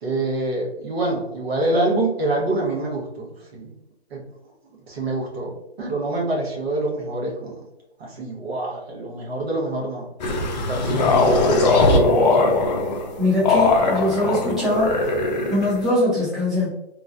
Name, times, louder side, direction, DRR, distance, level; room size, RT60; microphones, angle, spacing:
voice 1, 0.0-3.7 4.1-4.2 4.9-5.5 5.8-7.5 8.0-10.1 10.7-12.6, right 2 dB, 65° right, -3 dB, 1.2 m, -26 dB
sound 1, 10.2-15.9, left 2 dB, 40° left, 0.5 m, -19 dB
voice 2, 13.2-15.1 15.5-16.7, left 1 dB, ahead, -11 dB, 0.8 m, -22 dB
3.0 x 2.3 x 2.5 m, 0.90 s
hypercardioid pair, 135°, 33 cm